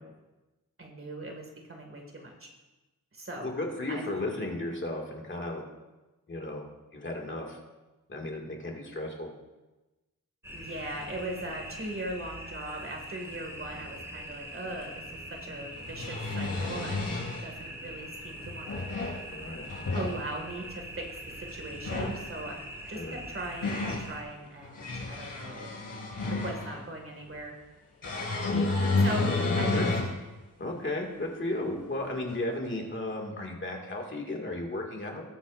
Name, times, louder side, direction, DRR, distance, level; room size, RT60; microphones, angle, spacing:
voice 1, 0.8-2.5 3.1-3.5 3.9-4.0 10.5-15.0 15.3-17.0 17.4-18.9 19.9-22.6 22.9-25.7 26.3-27.5 29.0-29.3 29.6-29.9, right 1 dB, 40° right, 1 dB, 2.0 m, -39 dB
voice 2, 3.4-5.6 6.3-6.7 6.9-7.6 8.1-9.3 19.3-19.6 22.9-23.2 28.4-28.7 29.7-30.0 30.6-35.2, left 2 dB, 35° left, 0 dB, 2.1 m, -34 dB
sound 1, 10.4-24.2, right 1 dB, 10° right, 2.1 m, -43 dB
sound 2, 14.8-14.9 15.8-17.4 18.4-19.2 19.6-20.1 21.7-22.2 23.1-24.1 24.6-26.8 28.0-30.1 30.7-30.8 32.3-32.4, left 3 dB, 75° left, 4.3 m, -30 dB
20.5 x 7.9 x 2.5 m, 1.1 s
wide cardioid pair, 135°, 33 cm